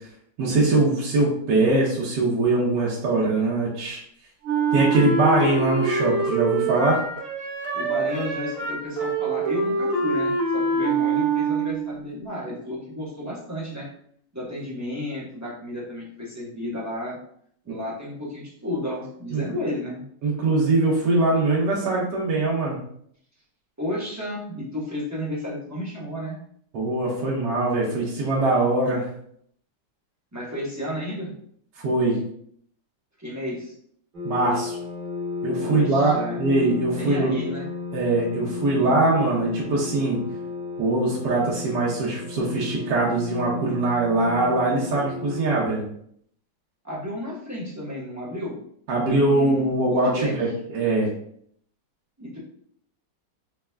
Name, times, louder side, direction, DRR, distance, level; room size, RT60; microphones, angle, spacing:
voice 1, 0.4-4.0 4.7-7.0 19.3-19.4 20.2-22.8 26.7-29.1 31.8-32.2 34.2-34.8 35.4-37.3 37.9-40.2 40.8-45.9 48.9-50.5 50.7-51.1, right 2 dB, 70° right, -5 dB, 1.5 m, -22 dB
Wind instrument woodwind instrument, 4.4-12.0, right 3 dB, 55° right, 1.2 m, -25 dB
voice 2, 7.7-13.9 14.3-17.2 17.6-20.0 23.8-26.4 30.3-31.3 33.2-33.7 35.6-36.5 36.9-37.7 46.8-48.6 49.3-50.4 52.2-52.4, left 1 dB, 10° right, -6 dB, 0.9 m, -32 dB
sound 1, 34.1-45.7, left 4 dB, 30° right, 1.1 m, -34 dB
5.1 x 3.5 x 2.2 m, 0.65 s
omnidirectional pair, 1.9 m